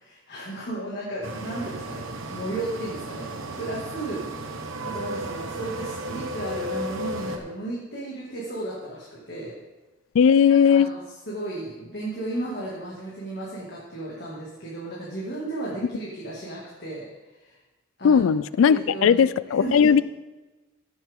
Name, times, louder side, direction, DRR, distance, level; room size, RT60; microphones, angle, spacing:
voice 1, 0.0-2.1 2.3-4.5 4.9-9.5 10.5-11.0 11.3-17.6 18.0-18.3 18.7-19.2 19.6-19.9, right 1 dB, 50° left, -5 dB, 2.1 m, -34 dB
sound 1, 1.2-7.4, right 1 dB, 80° right, 1.2 m, -34 dB
voice 2, 10.1-10.9 18.0-20.0, left 7 dB, 75° left, 18 dB, 0.3 m, -18 dB
16.0 x 7.2 x 3.6 m, 1.1 s
head